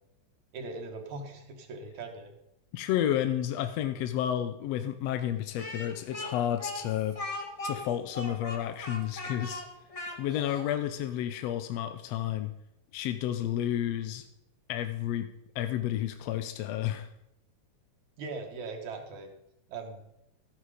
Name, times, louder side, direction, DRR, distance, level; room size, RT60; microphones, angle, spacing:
voice 1, 0.5-2.3 18.2-19.3 19.7-20.0, right 3 dB, 75° right, 3 dB, 3.0 m, -40 dB
voice 2, 2.7-7.2 7.6-9.6 10.2-12.5 12.9-14.3 14.7-15.3 15.5-17.1, left 11 dB, 75° left, 9 dB, 1.7 m, -31 dB
Speech, 5.6-10.7, left 2 dB, 35° left, 0.5 m, -39 dB
13.5 x 9.7 x 5.0 m, 0.83 s
omnidirectional pair, 3.4 m